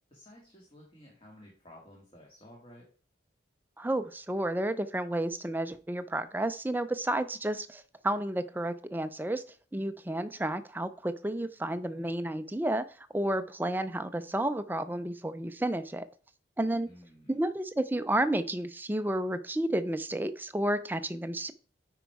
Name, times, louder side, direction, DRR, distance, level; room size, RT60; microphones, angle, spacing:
voice 1, 0.1-2.9 16.9-17.3, left 1 dB, 30° left, -2 dB, 1.9 m, -53 dB
voice 2, 3.8-9.4 9.7-12.8 13.1-16.0 16.6-16.9 17.3-21.5, right 1 dB, 10° right, 10 dB, 0.5 m, -31 dB
9.3 x 4.7 x 4.7 m, 0.41 s
head